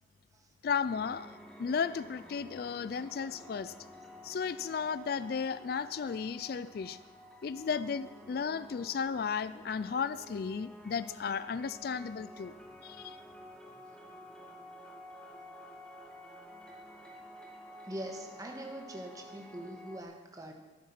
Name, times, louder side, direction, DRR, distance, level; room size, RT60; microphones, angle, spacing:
voice 1, 0.6-3.7 4.2-7.0 7.4-12.5 12.8-13.2, left 6 dB, 50° left, 15 dB, 0.3 m, -34 dB
sound 1, 0.9-20.0, equal, 5° left, 1.4 m, -51 dB
voice 2, 17.8-20.5, right 1 dB, 20° right, 2 dB, 1.5 m, -43 dB
13.5 x 11.0 x 5.7 m, 1.2 s
head